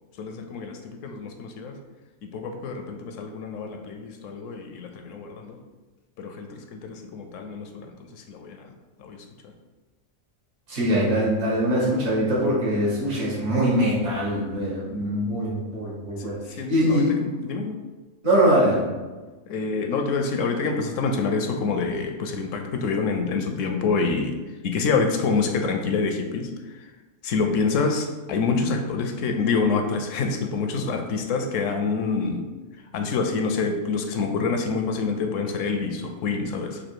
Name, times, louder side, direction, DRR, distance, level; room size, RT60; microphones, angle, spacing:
voice 1, 0.2-1.7 2.2-5.6 6.2-8.7 9.0-9.5 16.2-17.8 19.5-26.5 26.8-26.9 27.2-32.5 32.9-36.8, left 4 dB, 75° left, 5 dB, 0.9 m, -27 dB
voice 2, 10.7-16.4 16.7-17.1 18.2-18.9, equal, 70° right, -6 dB, 1.8 m, -22 dB
4.2 x 2.6 x 4.5 m, 1.3 s
omnidirectional pair, 1.4 m